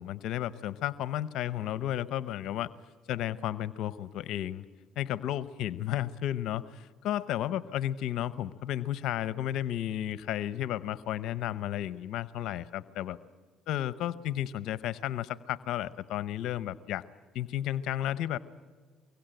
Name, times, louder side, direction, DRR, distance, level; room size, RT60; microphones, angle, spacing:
voice 1, 0.0-2.7 3.1-4.6 5.0-13.2 13.7-17.0 17.3-18.4, left 12 dB, 70° left, 16 dB, 0.7 m, -33 dB
24.0 x 24.0 x 9.0 m, 1.5 s
supercardioid pair, 90°, 0 cm